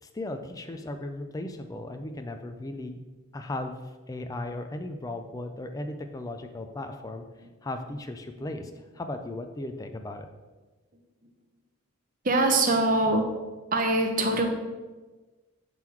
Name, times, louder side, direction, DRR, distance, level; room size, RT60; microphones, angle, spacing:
voice 1, 0.0-3.0 3.3-3.8 4.1-7.2 7.6-10.3, left 2 dB, 15° left, 6 dB, 0.3 m, -36 dB
voice 2, 12.2-13.3 13.7-14.4, right 2 dB, 40° right, 4 dB, 0.7 m, -23 dB
5.9 x 3.7 x 4.5 m, 1.2 s
head